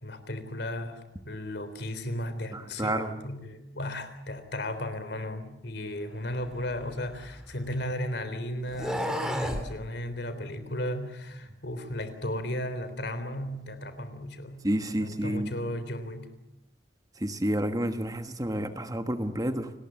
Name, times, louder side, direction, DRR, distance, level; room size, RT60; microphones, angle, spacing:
voice 1, 0.0-14.6 15.0-16.3, left 1 dB, 60° left, 10 dB, 3.6 m, -35 dB
voice 2, 2.5-3.1 14.6-15.5 17.2-19.7, right 1 dB, 20° right, 8 dB, 1.3 m, -30 dB
sound 1, 6.4-7.9 8.6-9.7, equal, 5° right, 2.9 m, -34 dB
29.0 x 20.0 x 7.8 m, 0.94 s
head